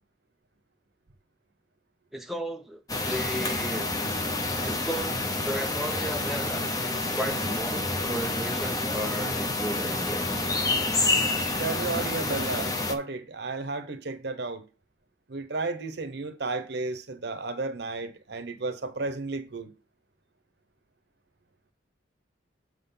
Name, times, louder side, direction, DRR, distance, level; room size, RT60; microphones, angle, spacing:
voice 1, 2.1-3.9 4.6-10.3, right 1 dB, ahead, 0.4 m, -35 dB
sound 1, 2.9-13.0, left 2 dB, 20° left, 0.7 m, -28 dB
voice 2, 11.6-14.7 15.3-19.7, right 3 dB, 60° right, 0.8 m, -33 dB
7.6 x 3.8 x 5.5 m
head